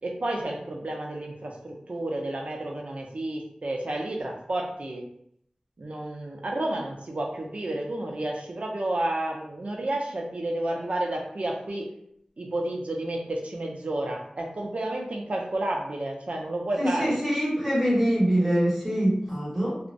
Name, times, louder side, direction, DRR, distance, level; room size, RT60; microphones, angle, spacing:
voice 1, 0.0-5.1 5.8-11.9 12.4-17.2, right 1 dB, 65° right, 0 dB, 0.5 m, -31 dB
voice 2, 16.8-19.8, equal, ahead, -7 dB, 1.3 m, -24 dB
2.4 x 2.1 x 2.5 m, 0.70 s
wide cardioid pair, 45°, 2 cm